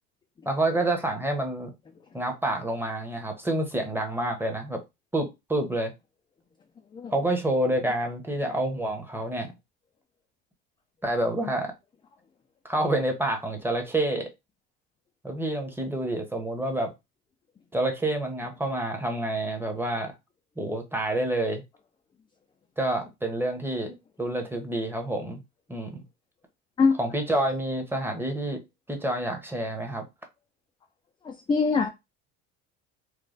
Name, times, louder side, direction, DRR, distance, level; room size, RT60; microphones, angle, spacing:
voice 1, 0.4-1.7 2.1-4.8 5.1-5.9 7.1-9.5 11.0-11.7 12.6-14.3 15.2-16.9 17.7-20.1 20.6-21.6 22.8-25.4 25.7-26.0 27.0-28.6 28.9-30.0, right 1 dB, 5° right, 0.9 m, -28 dB
voice 2, 31.2-31.9, left 5 dB, 15° left, 0.4 m, -23 dB
3.2 x 2.2 x 3.8 m
supercardioid pair, 105°, 32 cm